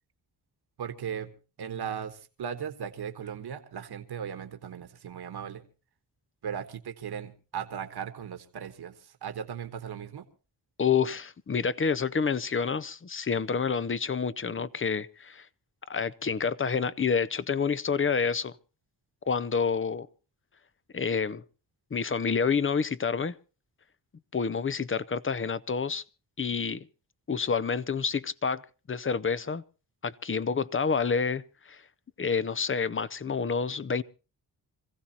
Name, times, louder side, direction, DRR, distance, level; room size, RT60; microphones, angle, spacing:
voice 1, 0.8-1.3 1.6-5.6 6.4-10.2, right 8 dB, 70° right, 1.5 m, -37 dB
voice 2, 10.8-15.5 15.9-18.5 19.3-20.1 20.9-21.4 21.9-23.3 24.3-26.0 26.4-26.9 27.3-28.6 28.9-29.6 30.0-31.8 32.2-34.0, left 5 dB, 30° left, 0.7 m, -28 dB
26.0 x 15.5 x 2.9 m
cardioid pair, 75°, 40 cm